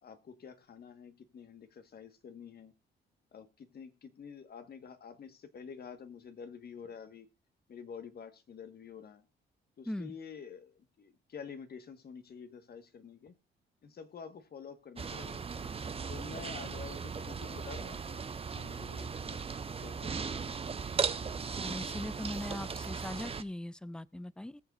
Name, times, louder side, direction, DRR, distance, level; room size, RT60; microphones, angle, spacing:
voice 1, 0.0-2.7 3.3-7.3 7.7-9.2 9.8-13.4 13.8-15.5 16.1-18.2 18.5-19.4 19.8-20.6, left 6 dB, 50° left, 1.6 m, -48 dB
voice 2, 9.9-10.2 21.6-24.6, left 1 dB, 5° left, 0.5 m, -40 dB
sound 1, 15.0-23.4, right 5 dB, 30° right, 0.8 m, -37 dB
21.0 x 7.0 x 2.6 m
cardioid pair, 90°, 20 cm